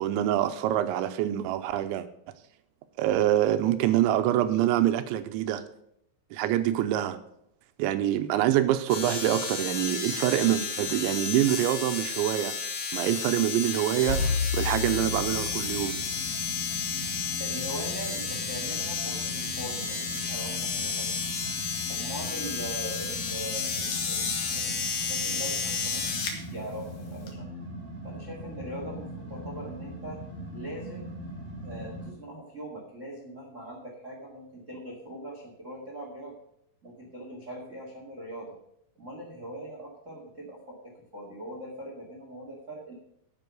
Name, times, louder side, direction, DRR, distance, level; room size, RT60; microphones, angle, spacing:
voice 1, 0.0-2.1 3.0-5.6 6.3-7.2 7.8-12.5 12.9-14.2 14.5-16.0, right 12 dB, 90° right, 11 dB, 3.0 m, -25 dB
sound 1, 8.9-26.4 27.3-27.4, left 5 dB, 60° left, 2.3 m, -32 dB
sound 2, 14.1-16.1, left 5 dB, 80° left, 4.5 m, -30 dB
sound 3, 14.9-32.1, left 1 dB, 20° right, 3.1 m, -40 dB
voice 2, 17.4-21.1 21.9-27.5 28.0-30.2 30.5-31.1 31.6-36.3 36.8-38.5 38.9-42.9, right 1 dB, 50° right, 0 dB, 0.8 m, -41 dB
10.5 x 7.6 x 6.3 m, 0.75 s
omnidirectional pair, 5.3 m